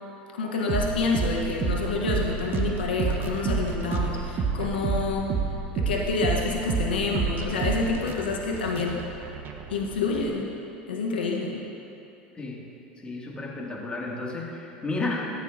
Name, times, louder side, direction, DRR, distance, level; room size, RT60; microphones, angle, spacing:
voice 1, 0.3-5.3 5.7-9.0 9.7-10.5 10.9-11.6, left 4 dB, 90° left, 0 dB, 0.9 m, -28 dB
sound 1, 0.7-10.3, right 5 dB, 40° right, 1.0 m, -29 dB
voice 2, 12.3-12.7 13.0-15.3, left 2 dB, 20° left, -3 dB, 1.9 m, -32 dB
14.0 x 8.3 x 2.5 m, 2.9 s
hypercardioid pair, 85°, 5 cm